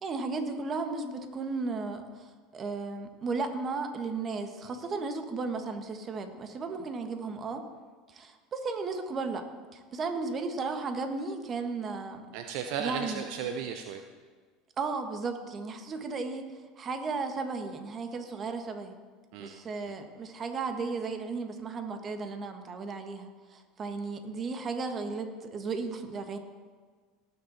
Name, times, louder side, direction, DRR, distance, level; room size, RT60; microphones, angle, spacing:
voice 1, 0.0-7.6 8.1-12.2 12.8-13.3 14.8-16.5 16.8-19.0 19.4-26.4, right 4 dB, 35° right, 6 dB, 1.7 m, -35 dB
voice 2, 12.3-14.0 19.3-19.6, right 7 dB, 65° right, 6 dB, 0.7 m, -35 dB
18.5 x 7.3 x 4.3 m, 1.5 s
hypercardioid pair, 80°, 0 cm